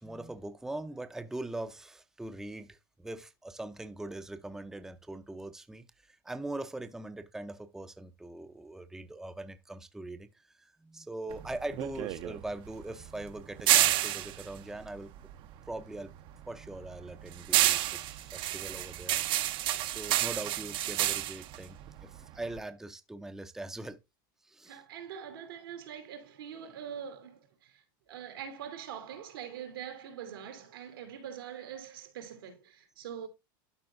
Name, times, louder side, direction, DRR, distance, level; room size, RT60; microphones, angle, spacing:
voice 1, 0.0-15.1 15.7-16.1 16.5-24.0 24.4-24.8, right 2 dB, 5° right, 0.6 m, -42 dB
sound 1, 11.3-15.8 16.1-22.6, right 14 dB, 45° right, 0.7 m, -30 dB
voice 2, 24.7-33.3, right 8 dB, 90° right, 2.6 m, -43 dB
12.5 x 4.3 x 2.5 m
supercardioid pair, 125°, 11 cm